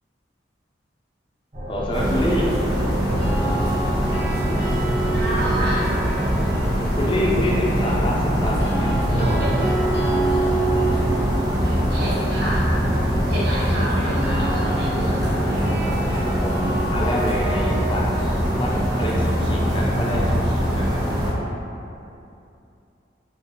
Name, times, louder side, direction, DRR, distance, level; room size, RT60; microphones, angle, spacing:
sound 1, 1.5-21.5, equal, 40° right, 1.3 m, -28 dB
voice 1, 1.7-2.4 7.0-8.1 8.4-9.0 15.8-18.0 18.6-20.9, left 1 dB, 25° left, -4 dB, 0.4 m, -27 dB
sound 2, 1.9-21.3, equal, 20° right, 0.6 m, -23 dB
sound 3, 3.0-7.2 8.4-20.3, right 3 dB, 75° left, 0.8 m, -30 dB
voice 2, 5.1-5.9 9.1-9.6 11.9-12.7 13.3-15.4, right 1 dB, 55° right, -6 dB, 0.7 m, -29 dB
3.8 x 2.3 x 2.9 m, 2.7 s
head